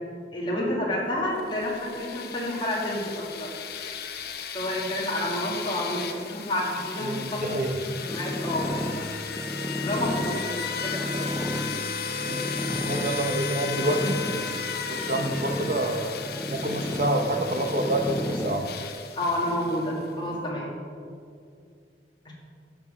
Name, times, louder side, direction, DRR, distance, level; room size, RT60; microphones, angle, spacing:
voice 1, 0.3-3.5 4.5-7.7 8.0-9.1 9.8-11.3 19.2-20.7 22.3-22.4, left 1 dB, 25° left, -4 dB, 2.3 m, -29 dB
sound 1, 1.4-20.1, left 6 dB, 60° left, 0.8 m, -35 dB
voice 2, 7.0-7.7 12.3-12.5 12.8-14.2 14.9-16.1 16.5-18.7, right 1 dB, 45° right, 4 dB, 1.0 m, -27 dB
sound 2, 8.1-18.6, left 1 dB, 10° left, 0.4 m, -33 dB
11.0 x 7.5 x 5.2 m, 2.3 s
head